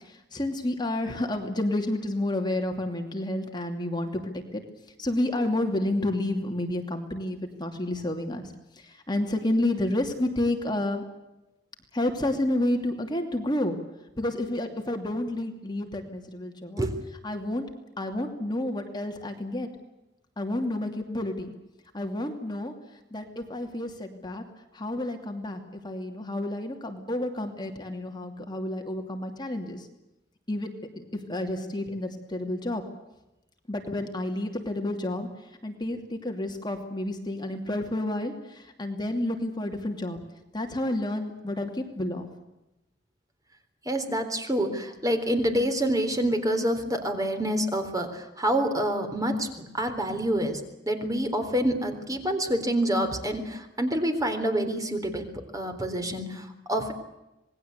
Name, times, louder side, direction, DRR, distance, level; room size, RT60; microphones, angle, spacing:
voice 1, 0.3-4.6 5.0-8.5 9.1-11.0 11.9-13.8 14.2-16.9 17.2-17.6 18.0-19.7 20.4-21.5 21.9-22.7 23.1-24.4 24.7-29.9 30.5-30.7 31.0-32.8 33.7-35.3 35.6-40.2 40.5-42.3, left 1 dB, 25° left, 4 dB, 2.8 m, -30 dB
voice 2, 43.9-50.6 50.9-55.3 55.5-56.9, right 1 dB, 20° right, 6 dB, 3.9 m, -27 dB
27.0 x 20.5 x 8.2 m, 0.97 s
head